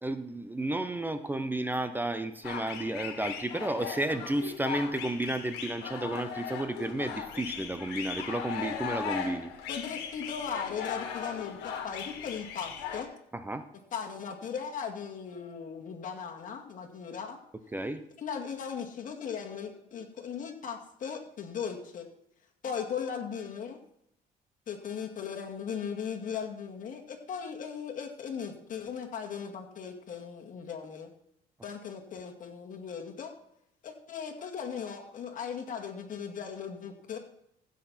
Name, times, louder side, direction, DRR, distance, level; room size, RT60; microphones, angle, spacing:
voice 1, 0.0-9.5 13.3-13.6 17.7-18.0, right 1 dB, 10° right, 10 dB, 0.7 m, -32 dB
sound 1, 2.4-13.0, left 8 dB, 85° left, 1.8 m, -38 dB
voice 2, 9.7-13.1 13.9-17.4 18.2-22.1 22.6-23.8 24.7-31.1 31.6-33.3 33.8-37.2, left 7 dB, 50° left, 2 dB, 2.2 m, -38 dB
15.5 x 6.4 x 4.4 m, 0.77 s
cardioid pair, 110°, 17 cm